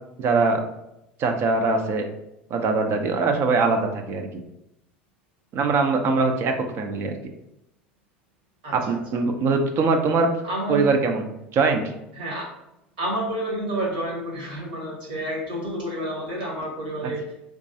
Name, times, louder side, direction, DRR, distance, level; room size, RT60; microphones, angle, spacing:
voice 1, 0.2-0.6 1.2-2.0 2.5-4.3 5.5-7.1 8.7-10.3 10.7-11.3 11.5-11.9, right 4 dB, 45° right, 5 dB, 0.6 m, -22 dB
voice 2, 10.4-10.8 12.2-12.5 13.0-17.2, right 1 dB, 75° right, -3 dB, 1.5 m, -29 dB
3.6 x 3.0 x 2.7 m, 0.86 s
hypercardioid pair, 75°, 6 cm